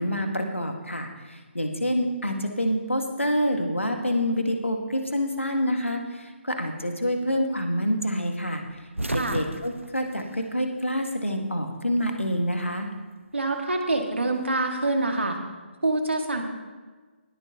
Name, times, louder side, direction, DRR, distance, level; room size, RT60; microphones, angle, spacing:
voice 1, 0.0-8.6 9.1-12.9, equal, 85° left, 4 dB, 1.7 m, -27 dB
sound 1, 8.6-11.2 11.5-12.5 13.7-15.2, right 1 dB, 90° right, 0.7 m, -35 dB
voice 2, 9.1-9.4 13.3-15.4 15.8-16.4, right 2 dB, 70° right, 3 dB, 2.0 m, -26 dB
20.0 x 8.9 x 2.9 m, 1.4 s
figure-of-eight pair, 145°, 7 cm